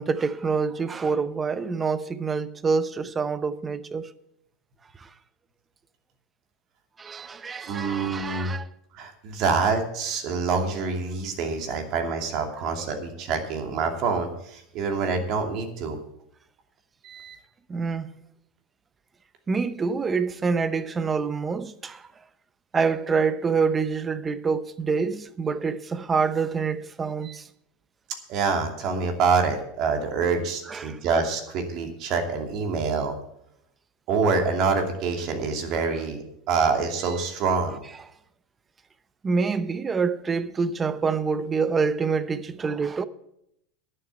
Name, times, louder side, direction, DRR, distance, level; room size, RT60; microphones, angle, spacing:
voice 1, 0.0-4.1 7.0-8.7 17.7-18.1 19.5-22.0 22.7-27.4 30.7-31.0 39.2-43.1, right 5 dB, 25° right, 0.8 m, -26 dB
voice 2, 7.7-8.5 8.9-16.0 17.0-17.4 27.2-27.4 28.3-33.1 34.1-37.8, right 4 dB, 50° right, 2.6 m, -26 dB
11.0 x 7.6 x 8.2 m
hypercardioid pair, 90°, 0 cm